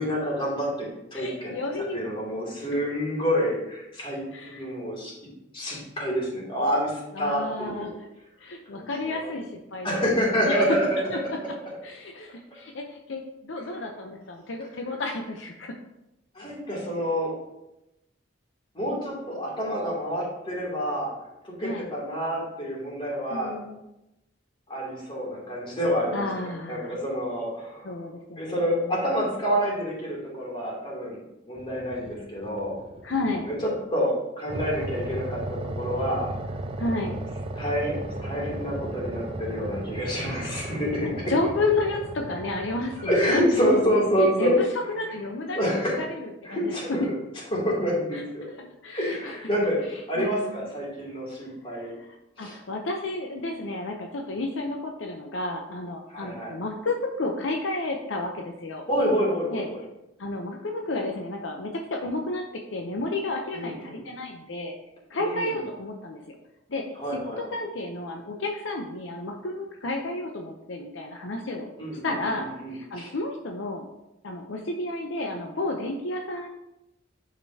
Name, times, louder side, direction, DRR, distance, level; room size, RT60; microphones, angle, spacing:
voice 1, 0.0-1.5 1.9-5.1 5.5-8.0 8.7-9.3 9.8-11.0 16.3-17.3 18.7-21.1 21.6-23.6 24.7-27.9 28.4-31.2 31.5-32.8 33.4-36.3 37.1-37.2 37.5-37.9 38.2-41.1 43.0-44.6 45.5-46.0 46.4-47.2 47.5-48.5 48.9-49.8 50.1-51.9 52.4-52.6 56.1-56.5 58.9-59.8 63.5-64.0 65.1-65.6 67.0-67.4 71.8-73.1, equal, 30° left, -5 dB, 2.7 m, -28 dB
voice 2, 1.1-2.0 4.3-4.6 7.1-7.9 8.4-10.0 10.3-10.6 11.1-11.2 11.8-15.7 21.6-21.9 23.3-23.8 26.1-27.0 27.8-28.9 33.0-33.5 36.8-37.2 40.2-43.9 44.3-44.7 45.0-45.6 46.0-46.7 48.1-48.2 48.6-49.4 49.9-50.7 51.7-58.8 59.5-59.7 60.2-64.7 65.1-66.4 66.7-71.7 72.0-73.8 74.2-76.5, left 2 dB, 75° left, 2 dB, 0.7 m, -32 dB
sound 1, 31.6-33.8 34.5-43.9, right 2 dB, 30° right, 0.5 m, -36 dB
10.0 x 5.1 x 2.8 m, 0.90 s
head